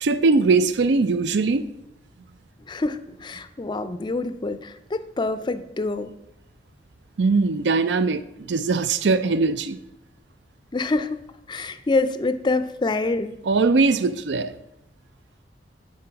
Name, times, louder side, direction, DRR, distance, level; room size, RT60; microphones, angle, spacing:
voice 1, 0.0-1.7 7.2-9.8 13.5-14.6, right 3 dB, 80° right, 13 dB, 0.5 m, -21 dB
voice 2, 2.7-6.1 10.7-13.3, left 3 dB, 25° left, 12 dB, 0.4 m, -26 dB
11.0 x 3.8 x 5.6 m, 0.83 s
head